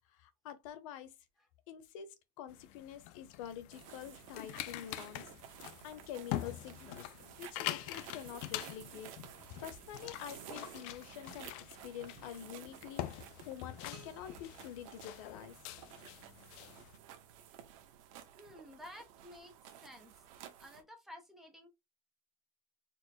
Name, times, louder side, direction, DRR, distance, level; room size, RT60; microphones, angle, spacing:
voice 1, 0.1-1.1 1.7-5.3 5.8-7.1 7.4-9.1 9.6-13.1 13.4-15.6, left 10 dB, 85° left, 0.9 m, -47 dB
sound 1, 2.5-17.0, left 14 dB, 50° left, 0.4 m, -45 dB
sound 2, 3.7-20.8, right 10 dB, 85° right, 1.0 m, -54 dB
sound 3, 13.9-15.8, right 12 dB, 60° right, 0.7 m, -62 dB
voice 2, 18.4-20.1 20.6-21.7, left 1 dB, ahead, 0.7 m, -53 dB
4.4 x 2.1 x 4.6 m
cardioid pair, 180°, 17 cm